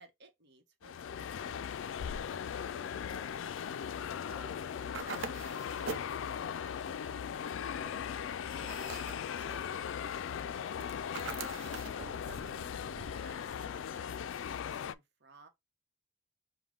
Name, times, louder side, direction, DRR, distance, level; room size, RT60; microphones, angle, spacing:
voice 1, 0.0-1.8 12.2-15.5, right 3 dB, 60° right, 0.9 m, -59 dB
sound 1, 0.8-14.9, left 8 dB, 80° left, 0.3 m, -38 dB
voice 2, 2.6-3.5 4.2-8.3 8.7-11.4, right 1 dB, 5° right, 0.8 m, -59 dB
sound 2, 4.9-6.2 8.5-9.3 11.1-12.0, right 5 dB, 85° right, 0.6 m, -42 dB
sound 3, 7.4-14.0, right 3 dB, 35° right, 0.4 m, -56 dB
5.2 x 2.2 x 3.6 m
head